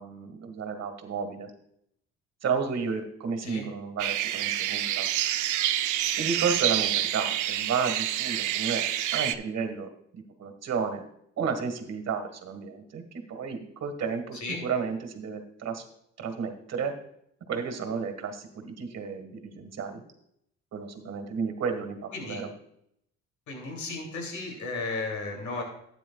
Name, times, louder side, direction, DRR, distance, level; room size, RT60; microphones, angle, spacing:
voice 1, 0.0-1.5 2.4-5.1 6.2-8.8 9.1-11.0 11.4-13.0 13.3-15.8 16.2-16.9 17.5-20.0 20.7-22.5, right 5 dB, 60° right, 7 dB, 1.7 m, -32 dB
sound 1, 4.0-9.3, right 13 dB, 80° right, 0.6 m, -28 dB
voice 2, 23.5-25.6, left 3 dB, 70° left, 2 dB, 2.8 m, -34 dB
12.5 x 9.3 x 2.3 m, 0.73 s
cardioid pair, 90°, 30 cm